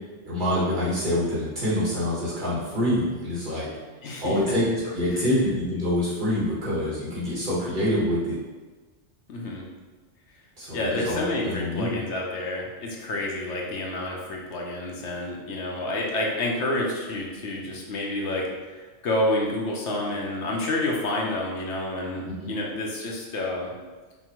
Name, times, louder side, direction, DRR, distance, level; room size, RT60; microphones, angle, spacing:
voice 1, 0.3-3.7 4.2-8.4 10.6-11.9 22.2-22.5, left 1 dB, 40° right, -9 dB, 1.4 m, -26 dB
voice 2, 4.0-4.5 5.1-5.3 9.3-9.7 10.7-23.7, left 1 dB, 75° left, -1 dB, 1.0 m, -29 dB
5.4 x 2.2 x 3.0 m, 1.3 s
omnidirectional pair, 1.2 m